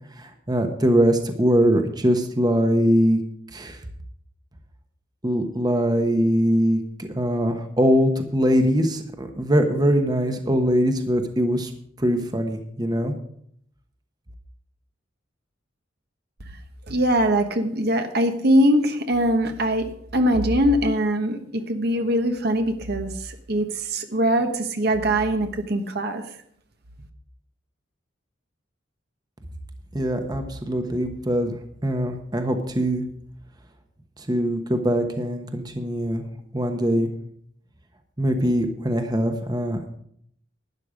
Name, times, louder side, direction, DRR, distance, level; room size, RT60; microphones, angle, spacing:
voice 1, 0.2-3.2 3.5-3.8 5.2-11.7 12.0-13.1 29.9-31.5 31.8-33.0 34.3-36.2 36.5-37.1 38.2-39.9, equal, 20° right, 6 dB, 1.1 m, -22 dB
voice 2, 16.9-19.9 20.1-23.1 23.5-26.2, equal, 55° right, 6 dB, 1.2 m, -22 dB
12.0 x 9.9 x 5.1 m, 0.68 s
head